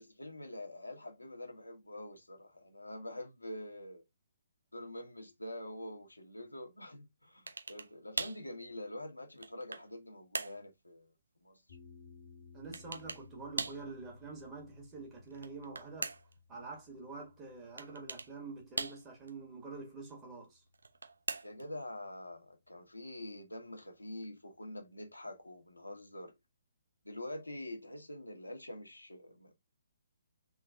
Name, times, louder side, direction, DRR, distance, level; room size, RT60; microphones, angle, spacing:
voice 1, 0.0-4.0 4.7-11.1 11.4-11.6 21.4-26.3 27.0-29.5, left 1 dB, 80° left, 1.3 m, -46 dB
sound 1, 7.5-7.9 8.2-8.5 9.1-9.9 10.3-10.6 12.7-13.3 13.6-13.9 15.3-16.4 17.8-18.3 18.8-19.3 20.7-21.7, right 3 dB, 65° right, 0.8 m, -40 dB
sound 2, 11.7-21.9, left 5 dB, 55° left, 1.2 m, -61 dB
voice 2, 12.5-16.2 16.5-20.6, right 3 dB, 15° right, 1.8 m, -46 dB
3.9 x 3.3 x 3.6 m
figure-of-eight pair, 130°, 0 cm